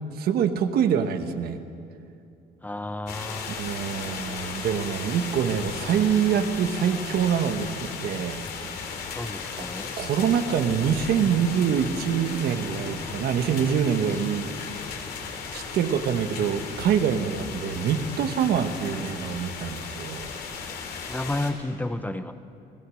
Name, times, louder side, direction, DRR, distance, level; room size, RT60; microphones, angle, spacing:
voice 1, 0.2-1.6 3.5-8.4 8.8-8.9 10.0-14.5 15.5-20.3, right 8 dB, 65° right, 8 dB, 1.4 m, -25 dB
voice 2, 2.6-3.6 9.1-9.9 21.1-22.3, left 2 dB, 10° left, 9 dB, 0.9 m, -31 dB
sound 1, 3.1-21.5, left 5 dB, 65° left, 3.1 m, -36 dB
29.5 x 16.0 x 6.4 m, 2.6 s
cardioid pair, 110°, 17 cm